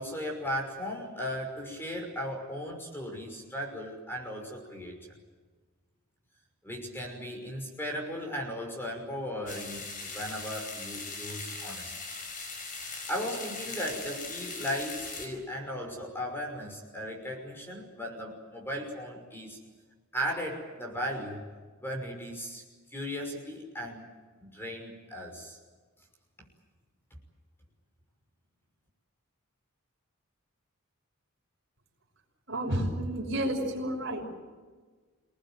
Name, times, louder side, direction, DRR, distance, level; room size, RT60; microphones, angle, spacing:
voice 1, 0.0-5.1 6.6-11.9 13.1-19.6 20.1-21.5 21.8-22.6 22.9-24.1 24.4-25.6, equal, 10° left, 2 dB, 5.9 m, -36 dB
sound 1, 9.5-15.3, left 3 dB, 40° left, 4.9 m, -40 dB
voice 2, 32.5-34.2, right 1 dB, 55° right, 1 dB, 6.0 m, -30 dB
27.0 x 19.5 x 9.3 m, 1.4 s
head